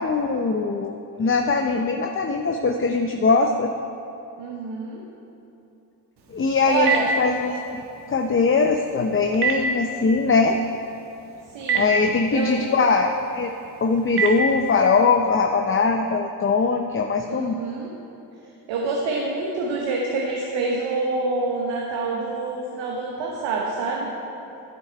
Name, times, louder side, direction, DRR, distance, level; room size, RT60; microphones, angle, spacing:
voice 1, 0.0-3.7 6.3-7.8 8.1-10.6 11.7-13.5 13.8-17.5, left 4 dB, 30° left, 4 dB, 0.6 m, -21 dB
voice 2, 4.4-5.0 6.7-7.1 11.5-11.9 12.3-12.6 17.3-17.9 18.7-24.1, right 3 dB, 90° right, -2 dB, 1.1 m, -27 dB
Telephone, 6.2-15.0, right 4 dB, 60° right, 1.4 m, -30 dB
10.5 x 7.9 x 4.6 m, 2.8 s
supercardioid pair, 55°, 44 cm